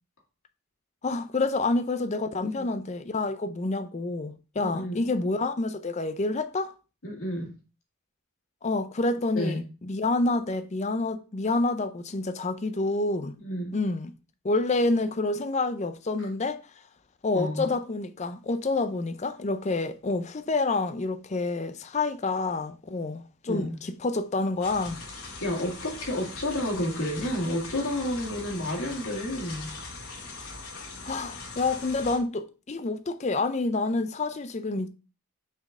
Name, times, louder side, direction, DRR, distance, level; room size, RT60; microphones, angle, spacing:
voice 1, 1.0-6.7 8.6-13.4 13.7-14.1 14.4-16.6 17.2-25.0 31.0-34.9, left 3 dB, 30° left, 0.5 m, -28 dB
voice 2, 4.6-5.0 7.0-7.5 9.3-9.6 13.4-13.7 16.2-16.3 17.3-17.7 23.5-23.8 25.4-29.7, left 1 dB, 70° left, 2.0 m, -30 dB
sound 1, 24.6-32.2, left 3 dB, 90° left, 2.0 m, -41 dB
6.1 x 4.4 x 3.6 m
head